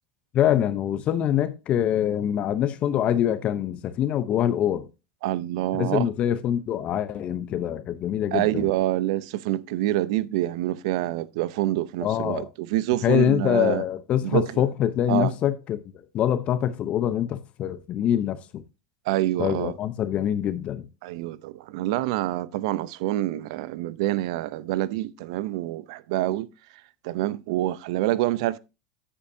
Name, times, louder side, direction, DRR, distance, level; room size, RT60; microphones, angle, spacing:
voice 1, 0.3-4.9 5.7-8.7 12.0-12.5 13.0-15.8 16.1-18.6 19.4-20.9, left 10 dB, 40° left, 0.8 m, -24 dB
voice 2, 5.2-6.1 8.3-13.8 14.2-14.7 15.1-15.3 19.1-19.7 21.0-26.5 27.0-28.6, right 15 dB, 75° right, 0.6 m, -26 dB
9.8 x 8.2 x 2.7 m
supercardioid pair, 130°, 3 cm